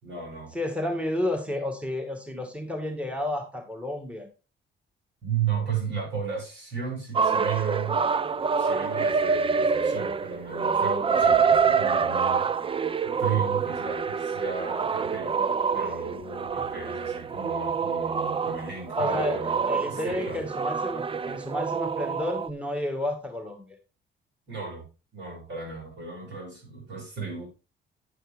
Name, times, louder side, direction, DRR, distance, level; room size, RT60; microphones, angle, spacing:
voice 1, 0.0-0.5 5.2-8.0 8.6-12.5 13.0-15.4 15.7-20.4 24.5-24.9 25.1-27.5, right 6 dB, 65° right, 6.8 m, -34 dB
voice 2, 0.5-4.3 16.6-16.7 19.0-23.6, left 1 dB, 5° right, 2.1 m, -31 dB
sound 1, 7.1-22.5, right 6 dB, 25° right, 0.5 m, -26 dB
10.0 x 8.3 x 3.6 m
cardioid pair, 90°, 20 cm